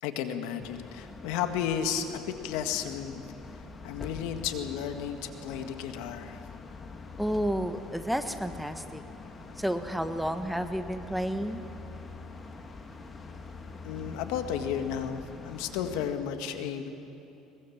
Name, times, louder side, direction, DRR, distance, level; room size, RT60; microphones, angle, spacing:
voice 1, 0.0-3.2 3.8-6.4 13.8-16.9, left 8 dB, 80° left, 7 dB, 1.7 m, -33 dB
sound 1, 0.6-16.1, left 3 dB, 25° left, 2.1 m, -44 dB
voice 2, 7.2-9.0 9.6-11.6, equal, ahead, 8 dB, 1.3 m, -31 dB
23.0 x 21.0 x 7.3 m, 2.9 s
supercardioid pair, 110°, 0 cm